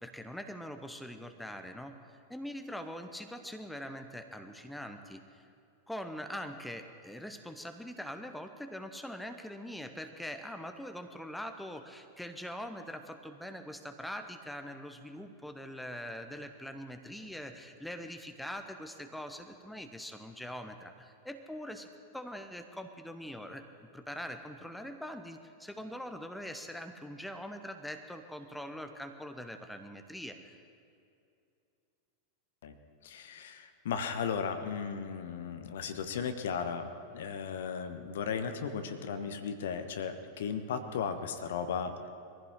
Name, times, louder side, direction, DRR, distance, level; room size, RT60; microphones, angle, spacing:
voice 1, 0.0-5.5 5.9-23.7 23.9-30.6, equal, 5° left, 6 dB, 1.0 m, -43 dB
voice 2, 33.0-41.9, left 6 dB, 60° left, 8 dB, 1.1 m, -36 dB
23.0 x 15.0 x 3.7 m, 2.5 s
figure-of-eight pair, 90°, 0 cm